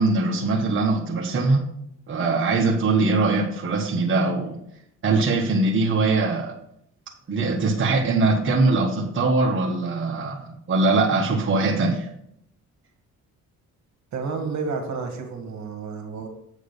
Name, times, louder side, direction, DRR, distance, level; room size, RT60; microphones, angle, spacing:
voice 1, 0.0-1.7 2.1-4.6 5.0-6.5 7.3-12.1, right 3 dB, 40° right, -1 dB, 1.3 m, -22 dB
voice 2, 14.1-16.3, right 4 dB, 65° right, 4 dB, 1.8 m, -30 dB
8.2 x 5.0 x 5.2 m, 0.72 s
cardioid pair, 90°, 30 cm